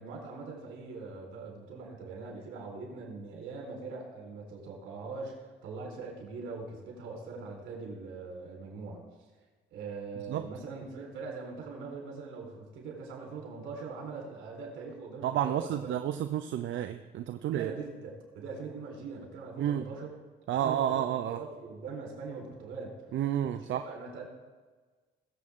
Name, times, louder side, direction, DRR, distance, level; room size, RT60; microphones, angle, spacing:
voice 1, 0.0-9.0 9.7-16.0 17.5-20.1 20.5-22.9 23.9-24.3, right 4 dB, 90° right, -1 dB, 4.3 m, -42 dB
voice 2, 15.2-17.7 19.6-19.9 20.5-21.4 23.1-23.8, right 11 dB, 70° right, 8 dB, 0.6 m, -30 dB
21.0 x 7.9 x 3.7 m, 1.4 s
cardioid pair, 90°, 20 cm